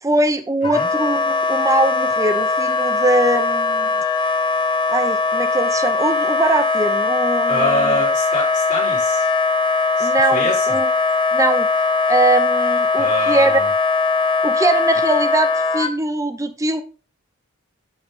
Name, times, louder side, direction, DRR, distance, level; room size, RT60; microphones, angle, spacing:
voice 1, 0.0-4.0 4.9-8.0 10.0-10.9 11.3-11.7 12.1-13.6 14.4-16.8, right 2 dB, 15° right, 9 dB, 0.7 m, -21 dB
Wind instrument woodwind instrument, 0.6-15.9, left 4 dB, 25° left, 0.6 m, -20 dB
voice 2, 7.5-9.3 10.0-10.8 13.0-13.7, left 1 dB, 40° left, -5 dB, 3.8 m, -24 dB
7.3 x 5.6 x 3.8 m, 0.34 s
head